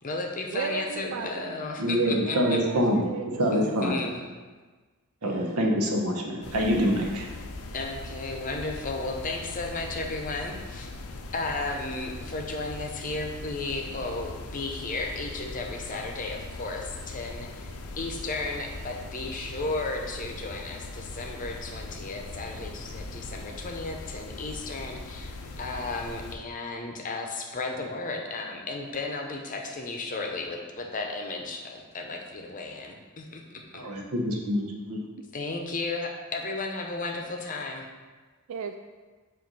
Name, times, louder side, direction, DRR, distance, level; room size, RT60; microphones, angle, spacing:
voice 1, 0.0-2.6 3.5-4.2 7.7-10.9 11.3-17.7 18.0-33.8 35.3-37.9, left 3 dB, 35° left, 2 dB, 0.7 m, -34 dB
voice 2, 0.5-1.5 2.3-3.8 5.2-5.8 38.5-38.8, right 5 dB, 65° right, 6 dB, 0.3 m, -36 dB
voice 3, 1.8-3.0 3.4-4.0 5.2-7.3 33.7-35.0, equal, 80° right, 0 dB, 1.0 m, -25 dB
sound 1, 6.4-26.4, left 2 dB, 85° left, 0.6 m, -40 dB
7.6 x 2.6 x 5.3 m, 1.4 s
head